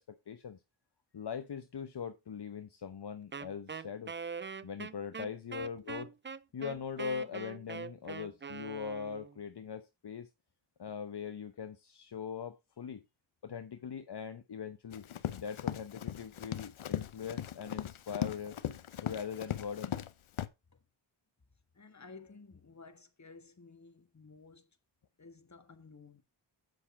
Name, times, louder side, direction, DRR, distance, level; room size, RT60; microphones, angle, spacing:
voice 1, 0.3-0.6 1.1-4.1 4.6-6.1 6.5-10.3 10.8-13.0 13.4-15.0 15.3-18.6 19.0-20.0, left 7 dB, 55° left, 0.9 m, -41 dB
Wind instrument woodwind instrument, 3.3-9.4, right 5 dB, 25° right, 0.5 m, -43 dB
Run, 14.9-20.1 20.4-20.5, left 10 dB, 85° left, 0.8 m, -38 dB
voice 2, 21.7-24.8 25.2-26.2, left 4 dB, 35° left, 1.6 m, -54 dB
8.2 x 6.5 x 5.0 m
wide cardioid pair, 65°, 47 cm